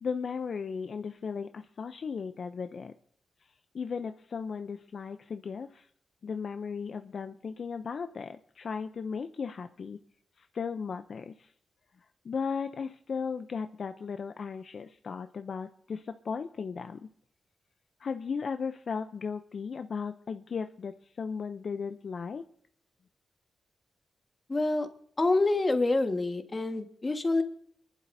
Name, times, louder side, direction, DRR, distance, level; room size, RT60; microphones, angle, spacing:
voice 1, 0.0-2.9 3.7-5.9 6.2-10.0 10.4-11.5 12.2-17.0 18.0-22.4, left 5 dB, 65° left, 8 dB, 0.5 m, -36 dB
voice 2, 24.5-24.9 25.2-27.4, left 2 dB, 30° left, 6 dB, 1.5 m, -27 dB
25.0 x 11.5 x 2.7 m, 0.63 s
cardioid pair, 75°, 0 cm